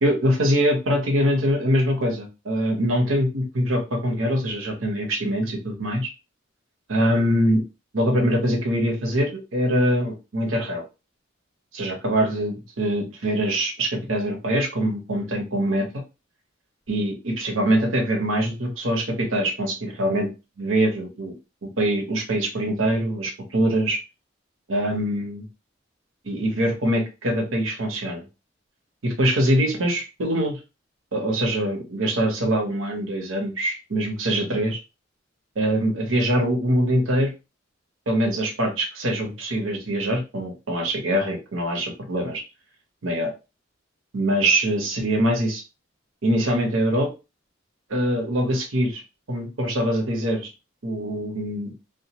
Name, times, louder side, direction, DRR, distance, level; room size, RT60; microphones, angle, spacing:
voice 1, 0.0-6.1 6.9-7.6 7.9-10.8 11.7-15.9 16.9-20.3 20.6-21.3 21.6-24.0 24.7-25.5 26.2-28.2 29.0-30.6 31.1-34.8 35.6-37.3 38.1-42.4 43.0-43.3 44.1-45.6 46.2-47.1 47.9-49.0 49.3-50.5 50.8-51.7, right 1 dB, 85° right, 2 dB, 0.9 m, -23 dB
2.3 x 2.1 x 2.8 m, 0.28 s
head